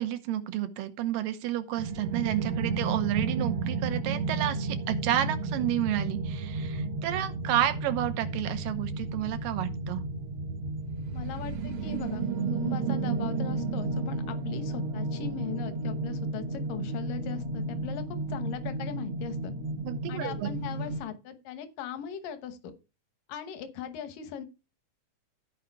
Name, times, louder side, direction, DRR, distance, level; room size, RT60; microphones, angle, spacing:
voice 1, 0.0-10.0 19.8-20.5, right 12 dB, 85° right, 2.7 m, -31 dB
sound 1, 1.8-21.0, right 3 dB, 70° right, 1.2 m, -32 dB
voice 2, 11.1-19.5 20.1-22.7 23.3-24.5, left 9 dB, 80° left, 2.8 m, -39 dB
14.0 x 5.0 x 4.7 m
omnidirectional pair, 3.8 m